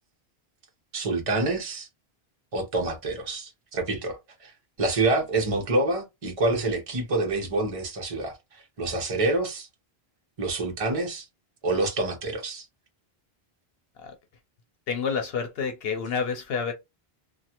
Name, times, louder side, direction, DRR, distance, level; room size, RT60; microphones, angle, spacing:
voice 1, 0.9-1.9 2.5-9.7 10.4-11.3 11.6-12.7, right 2 dB, 35° right, 0.9 m, -27 dB
voice 2, 14.9-16.7, left 5 dB, 75° left, 0.8 m, -29 dB
3.1 x 2.4 x 2.8 m
omnidirectional pair, 1.0 m